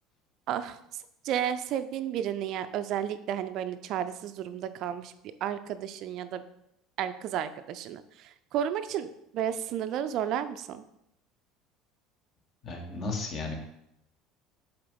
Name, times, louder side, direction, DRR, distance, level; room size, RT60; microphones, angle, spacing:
voice 1, 0.5-0.8 1.2-5.1 5.4-6.4 7.0-10.8, right 10 dB, 50° right, 12 dB, 0.4 m, -32 dB
voice 2, 12.6-13.6, left 3 dB, 40° left, 3 dB, 1.5 m, -34 dB
7.4 x 4.4 x 3.7 m, 0.83 s
figure-of-eight pair, 65°, 0 cm